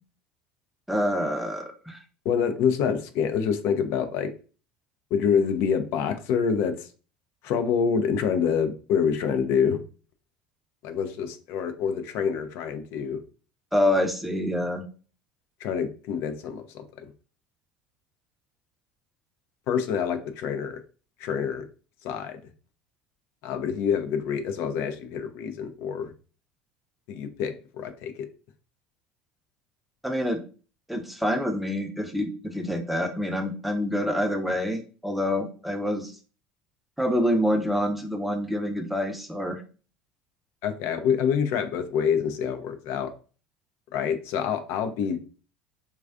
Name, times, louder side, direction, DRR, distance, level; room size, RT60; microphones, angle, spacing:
voice 1, 0.9-2.0 13.7-14.8 30.0-30.4 30.9-36.1 37.0-39.6, equal, ahead, 5 dB, 0.5 m, -26 dB
voice 2, 2.3-4.3 5.1-6.9 7.4-9.8 10.8-13.2 15.6-17.1 19.7-20.8 21.2-21.7 22.0-22.4 23.4-26.1 27.1-28.3 40.6-43.1 43.9-45.2, left 7 dB, 60° left, 9 dB, 0.3 m, -26 dB
2.3 x 2.2 x 2.4 m, 0.37 s
hypercardioid pair, 75°, 5 cm